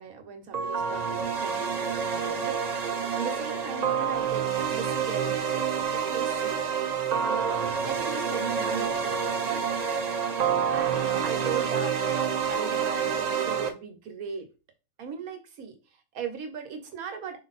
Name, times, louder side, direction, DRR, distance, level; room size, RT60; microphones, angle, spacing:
voice 1, 0.0-6.6 7.2-9.6 10.7-14.5 15.0-17.4, right 6 dB, 75° right, 6 dB, 1.4 m, -38 dB
sound 1, 0.5-13.7, right 7 dB, 55° right, 0.4 m, -28 dB
4.6 x 2.8 x 4.0 m, 0.30 s
omnidirectional pair, 1.5 m